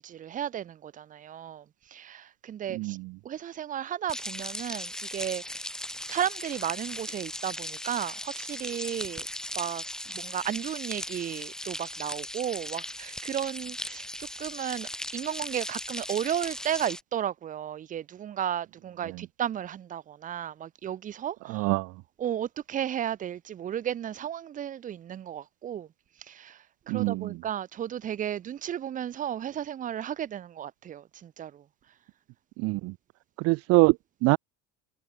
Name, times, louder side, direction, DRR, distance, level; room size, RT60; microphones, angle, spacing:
voice 1, 0.0-3.0 3.2-5.7 6.1-9.3 9.5-21.7 22.2-25.9 26.2-31.6, right 10 dB, 25° right, 1.0 m, -34 dB
voice 2, 2.7-3.1 21.5-21.9 26.9-27.4 32.6-32.9 33.4-34.0 34.2-34.4, right 24 dB, 50° right, 0.5 m, -24 dB
sound 1, 4.1-17.0, left 1 dB, ahead, 2.1 m, -38 dB
cardioid pair, 175°, 32 cm